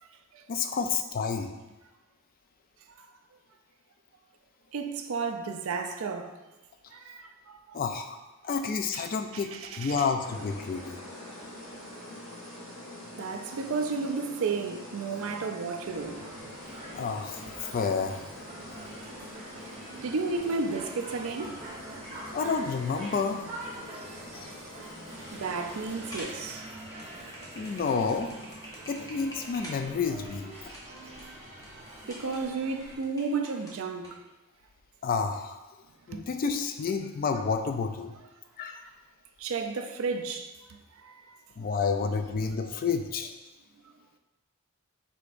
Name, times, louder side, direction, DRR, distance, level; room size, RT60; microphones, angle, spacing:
voice 1, 0.5-1.5 7.7-8.2 8.4-11.0 16.9-18.2 22.3-23.4 24.3-24.5 27.6-28.3 28.9-30.4 35.0-35.6 36.1-38.2 38.6-38.7 41.6-43.3, left 5 dB, 40° left, 0.3 m, -30 dB
voice 2, 4.7-6.3 6.9-8.0 8.9-9.0 9.3-10.1 13.2-16.2 17.6-17.7 20.0-21.6 25.3-26.6 32.1-34.1 36.1-36.2 39.4-40.5 41.0-41.2 41.8-41.9, right 4 dB, 65° right, 0.4 m, -33 dB
sound 1, 10.2-26.2, left 1 dB, 60° left, 1.2 m, -45 dB
sound 2, 15.8-33.0, right 1 dB, 30° right, 0.9 m, -45 dB
sound 3, 26.1-34.1, equal, 15° left, 0.8 m, -47 dB
4.9 x 3.9 x 2.5 m
head